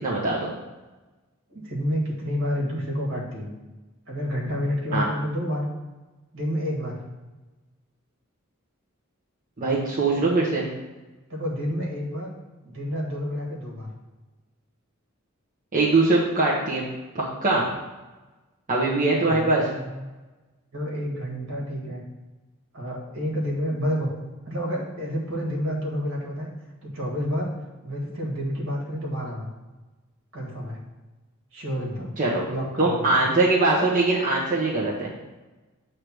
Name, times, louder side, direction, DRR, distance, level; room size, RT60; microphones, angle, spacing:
voice 1, 0.0-0.5 4.9-5.1 9.6-10.7 15.7-16.8 17.1-17.7 18.7-19.7 32.2-32.5 32.8-35.1, right 2 dB, 40° right, -6 dB, 1.0 m, -22 dB
voice 2, 1.5-3.5 4.1-5.7 6.3-7.0 11.3-12.3 12.6-13.9 18.9-20.1 20.7-22.0 22.7-24.1 24.5-26.5 26.8-27.5 27.8-29.5 30.3-30.8 31.5-32.1 32.5-33.2, equal, 65° right, -2 dB, 1.9 m, -29 dB
7.8 x 3.4 x 6.1 m, 1.2 s
head